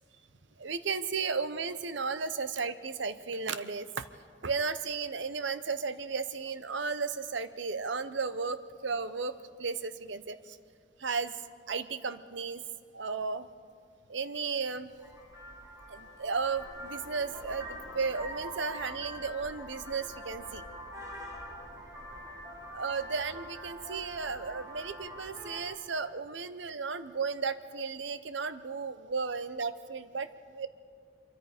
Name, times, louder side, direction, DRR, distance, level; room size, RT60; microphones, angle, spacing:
voice 1, 0.6-4.1 4.4-9.3 9.6-10.6 11.0-11.4 11.7-12.6 12.9-13.5 14.1-14.9 15.9-20.6 22.7-30.7, right 5 dB, 75° right, 13 dB, 0.8 m, -34 dB
Vehicle horn car horn honking, 14.9-25.6, equal, 20° right, 2.7 m, -44 dB
25.5 x 23.5 x 5.0 m, 2.2 s
head